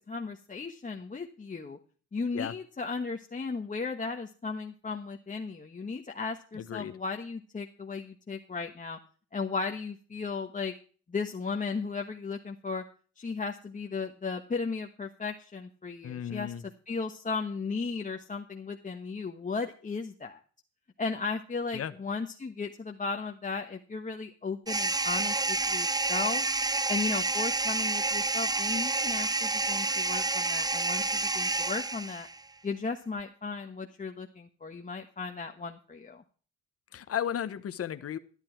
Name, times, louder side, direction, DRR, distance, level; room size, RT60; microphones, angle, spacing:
voice 1, 0.0-1.8 2.1-9.0 9.3-10.7 11.1-12.8 13.2-16.5 16.9-20.4 21.0-26.5 26.9-32.3 32.6-36.2, left 4 dB, 25° left, 3 dB, 1.2 m, -35 dB
voice 2, 6.5-6.9 16.0-16.6 21.7-21.9 36.9-38.2, left 9 dB, 50° left, 11 dB, 1.1 m, -34 dB
sound 1, 24.7-32.4, right 3 dB, 15° right, 0.7 m, -29 dB
12.5 x 11.5 x 4.5 m, 0.41 s
cardioid pair, 90°, 30 cm